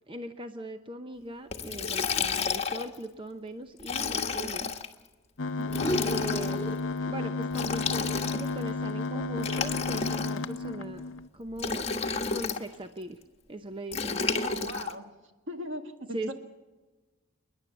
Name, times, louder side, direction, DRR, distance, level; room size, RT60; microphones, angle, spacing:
voice 1, 0.1-4.7 6.0-6.7 7.0-11.0 11.3-11.9 12.3-13.2 13.5-14.3 16.1-16.3, right 1 dB, 25° right, 7 dB, 0.7 m, -40 dB
Liquid, 1.5-3.0 3.8-4.9 5.7-6.6 7.5-8.6 9.4-10.6 11.6-12.6 13.9-14.9, left 5 dB, 30° left, 1.3 m, -31 dB
sound 1, 5.4-11.3, left 3 dB, 65° left, 0.7 m, -32 dB
sound 2, 5.6-7.4 7.7-9.9, equal, 10° left, 1.8 m, -36 dB
voice 2, 5.6-5.9 14.4-15.0 15.5-16.3, right 1 dB, 65° right, 5 dB, 2.1 m, -39 dB
28.5 x 11.0 x 8.5 m, 1.3 s
head